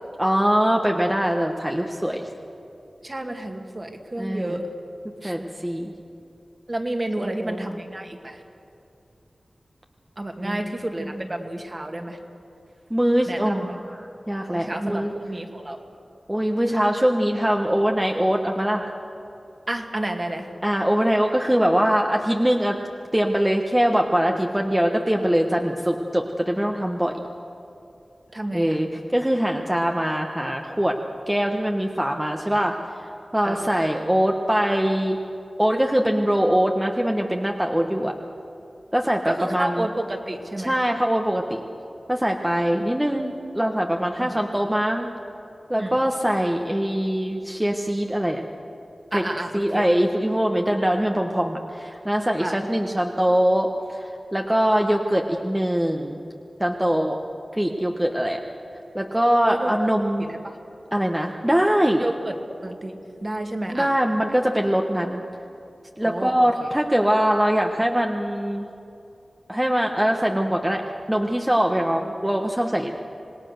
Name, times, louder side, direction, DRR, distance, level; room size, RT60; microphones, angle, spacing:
voice 1, 0.2-2.3 4.2-4.6 5.2-5.9 7.2-7.8 10.4-10.7 11.0-11.3 12.9-15.1 16.3-18.9 20.6-22.8 23.1-27.1 28.5-31.0 31.3-32.8 33.3-35.2 35.6-38.1 38.9-39.9 40.6-41.6 42.1-45.1 45.7-48.4 49.1-49.2 49.5-56.2 56.6-57.2 57.5-58.4 58.9-60.3 60.9-62.0 63.7-65.2 66.0-68.7 69.5-72.9, equal, 10° right, 2 dB, 1.2 m, -22 dB
voice 2, 3.0-4.6 5.2-5.3 6.7-8.4 10.2-11.0 11.3-12.2 13.3-13.7 14.5-15.8 19.7-20.5 28.3-28.8 33.4-33.6 39.2-40.7 44.2-44.3 45.8-46.0 49.1-49.8 52.4-52.6 59.5-59.7 60.2-60.4 62.0-62.4 62.6-62.9 63.2-63.9 66.0-66.3, right 1 dB, 35° right, 4 dB, 2.2 m, -30 dB
26.5 x 19.0 x 6.7 m, 2.7 s
wide cardioid pair, 65°, 0 cm